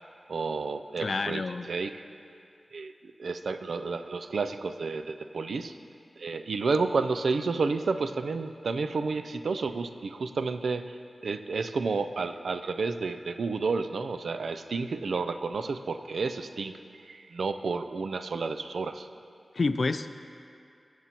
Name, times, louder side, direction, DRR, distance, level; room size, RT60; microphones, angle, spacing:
voice 1, 0.3-1.4 1.7-2.0 2.7-2.9 3.2-5.8 6.2-11.0 11.2-19.1, right 4 dB, 85° right, 10 dB, 0.3 m, -31 dB
voice 2, 1.0-1.7 19.5-20.2, left 3 dB, 50° left, 11 dB, 0.3 m, -29 dB
16.0 x 7.4 x 2.9 m, 2.5 s
wide cardioid pair, 110°, 0 cm